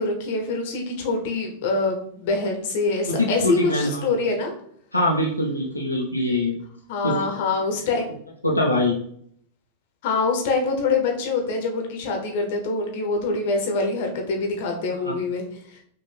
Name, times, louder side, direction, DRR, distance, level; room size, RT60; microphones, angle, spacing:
voice 1, 0.0-4.5 6.9-8.1 10.0-15.4, left 3 dB, 50° left, 2 dB, 1.0 m, -25 dB
voice 2, 3.1-4.1 4.9-6.5 7.0-7.5 8.4-9.0 14.9-15.1, left 1 dB, 90° left, -3 dB, 0.7 m, -23 dB
5.4 x 2.5 x 3.5 m, 0.64 s
figure-of-eight pair, 90°, 0 cm